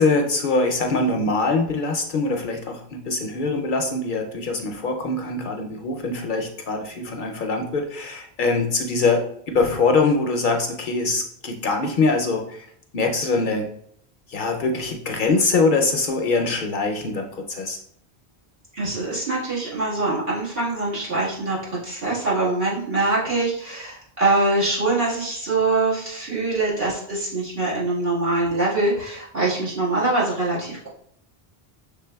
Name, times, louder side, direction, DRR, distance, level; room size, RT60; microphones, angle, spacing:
voice 1, 0.0-12.7 12.9-13.7 14.3-17.8, left 3 dB, 60° left, 3 dB, 0.6 m, -23 dB
voice 2, 18.7-21.6 21.8-30.9, right 2 dB, 65° right, -8 dB, 2.0 m, -23 dB
6.1 x 3.4 x 2.2 m, 0.67 s
omnidirectional pair, 1.1 m